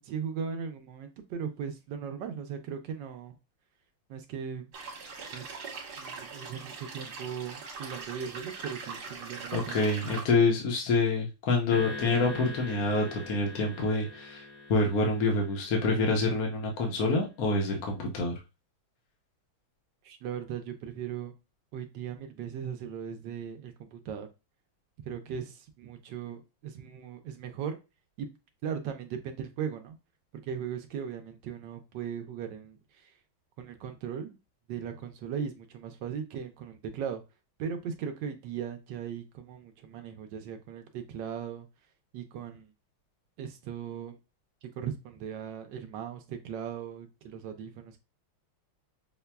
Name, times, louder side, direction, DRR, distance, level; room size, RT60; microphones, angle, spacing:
voice 1, 0.0-3.4 4.1-4.7 5.3-5.4 6.0-9.9 10.3-10.4 20.0-21.3 21.7-24.3 25.1-27.8 28.2-28.3 28.6-30.0 30.4-33.1 33.6-34.4 34.7-37.2 37.6-41.7 42.1-42.7 43.4-44.2 44.6-48.0, right 7 dB, 75° right, 6 dB, 1.1 m, -38 dB
sound 1, 4.7-10.2, right 4 dB, 55° right, 1.5 m, -41 dB
voice 2, 9.5-14.4 14.7-18.3, left 3 dB, 60° left, 0 dB, 1.1 m, -27 dB
sound 2, 11.7-16.2, left 2 dB, 85° left, 0.7 m, -42 dB
5.7 x 2.2 x 2.2 m, 0.27 s
omnidirectional pair, 2.3 m